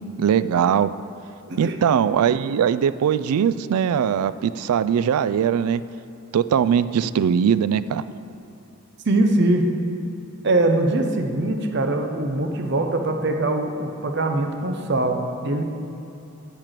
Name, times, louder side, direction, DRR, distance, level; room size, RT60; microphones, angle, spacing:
voice 1, 0.2-0.9 1.6-5.8 6.3-8.0, right 8 dB, 85° right, 15 dB, 0.3 m, -20 dB
voice 2, 9.1-9.7 10.4-15.6, right 2 dB, 50° right, 4 dB, 0.7 m, -22 dB
9.8 x 4.6 x 7.5 m, 2.9 s
head